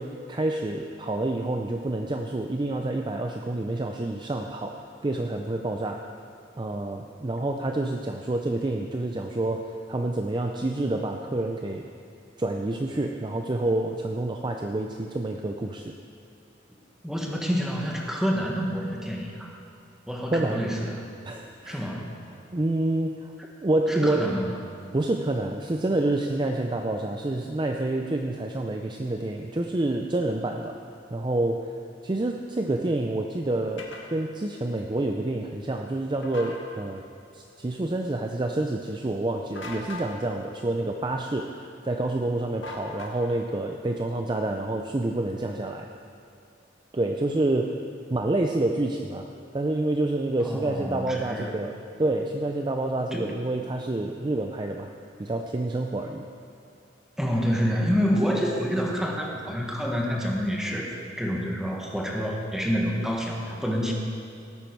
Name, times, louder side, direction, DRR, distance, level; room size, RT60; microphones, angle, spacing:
voice 1, 0.0-6.0 6.6-11.8 12.4-15.9 20.3-20.6 21.2-21.8 22.5-23.3 23.6-24.3 24.9-30.8 31.1-31.8 32.0-37.1 37.3-45.9 46.9-47.8 48.1-49.3 49.5-54.9 55.2-56.3, right 2 dB, 25° right, 3 dB, 0.5 m, -28 dB
voice 2, 17.0-19.6 20.1-21.0 21.7-22.2 23.9-24.6 50.4-51.5 53.1-53.3 57.2-60.9 61.2-63.9, equal, 5° right, -1 dB, 1.4 m, -28 dB
sound 1, 33.8-34.0 36.2-36.6 39.5-40.1 42.6-43.4, left 3 dB, 90° left, 1.7 m, -39 dB
17.5 x 9.1 x 4.6 m, 2.4 s
head